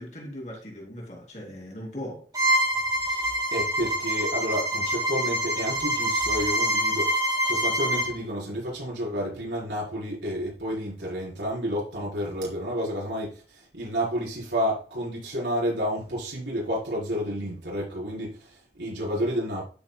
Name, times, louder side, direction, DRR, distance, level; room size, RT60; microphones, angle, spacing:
voice 1, 0.0-2.3, equal, 40° left, 2.8 m, -39 dB
Bowed string instrument, 2.3-8.1, equal, 20° right, 3.0 m, -25 dB
voice 2, 3.0-19.6, equal, 80° right, 4.6 m, -30 dB
13.0 x 6.1 x 2.3 m
head